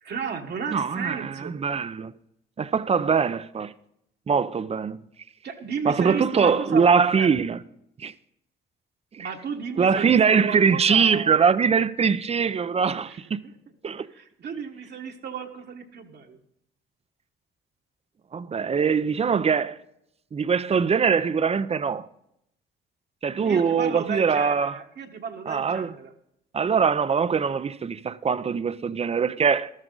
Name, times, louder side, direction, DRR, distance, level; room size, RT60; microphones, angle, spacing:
voice 1, 0.0-1.5 5.4-6.9 7.2-7.3 9.2-11.4 13.1-13.2 13.4-13.5 13.9-16.4 23.4-26.1, right 6 dB, 55° right, 1.4 m, -34 dB
voice 2, 0.7-2.1 2.6-3.7 4.3-5.0 5.8-7.6 8.0-8.1 9.2-9.3 9.8-13.4 13.8-14.1 18.3-19.8 20.3-22.1 23.2-24.8 25.5-25.9 26.5-29.7, right 6 dB, 30° right, 0.5 m, -22 dB
13.5 x 12.5 x 3.9 m
cardioid pair, 90°, 20 cm